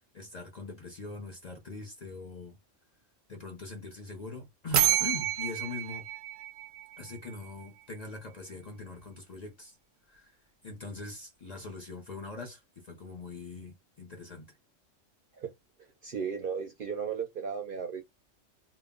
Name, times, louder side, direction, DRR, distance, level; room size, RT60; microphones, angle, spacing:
voice 1, 0.1-2.6 3.3-6.1 7.0-9.8 10.1-10.4 10.6-14.6, left 3 dB, 45° left, 0.6 m, -42 dB
sound 1, 4.7-7.5, right 11 dB, 85° right, 1.0 m, -29 dB
voice 2, 16.0-18.0, right 6 dB, 55° right, 0.6 m, -35 dB
2.3 x 2.0 x 3.6 m
omnidirectional pair, 1.3 m